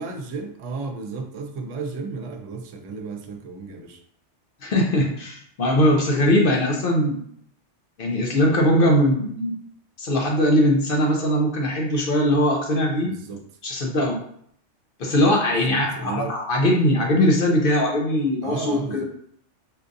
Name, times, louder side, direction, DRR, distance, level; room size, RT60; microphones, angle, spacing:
voice 1, 0.0-4.0 13.0-13.4 15.5-16.4 18.4-19.0, right 4 dB, 85° right, 5 dB, 1.0 m, -33 dB
voice 2, 4.6-7.2 8.0-9.6 10.0-13.1 13.6-14.2 15.0-19.0, left 1 dB, 55° left, 0 dB, 0.7 m, -20 dB
4.5 x 2.5 x 2.5 m, 0.65 s
omnidirectional pair, 1.3 m